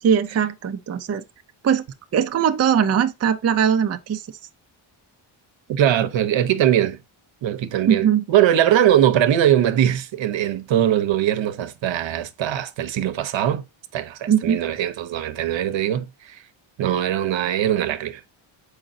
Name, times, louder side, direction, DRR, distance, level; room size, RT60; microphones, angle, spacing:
voice 1, 0.0-1.2 1.6-1.8 2.1-4.2 7.9-8.2 14.3-14.6, right 8 dB, 30° right, 0.5 m, -20 dB
voice 2, 5.7-7.0 7.4-13.6 13.9-16.4 16.8-18.2, right 11 dB, 65° right, 0.9 m, -21 dB
7.5 x 4.9 x 2.6 m
cardioid pair, 120°, 48 cm